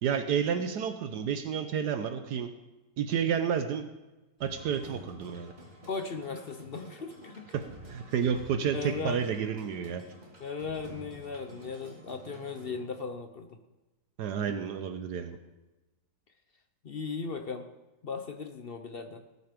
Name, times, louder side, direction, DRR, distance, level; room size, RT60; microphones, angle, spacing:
voice 1, 0.0-2.5 3.0-3.9 4.4-5.5 7.5-7.6 7.9-10.0 14.2-15.4, right 7 dB, 75° right, 8 dB, 1.3 m, -30 dB
Action Percussion, 4.4-12.8, right 1 dB, 30° right, 2.6 m, -49 dB
voice 2, 5.8-7.5 8.7-9.3 10.4-13.6 16.8-17.7 18.0-19.2, left 4 dB, 55° left, 7 dB, 0.6 m, -37 dB
18.0 x 6.9 x 5.1 m, 1.1 s
omnidirectional pair, 1.9 m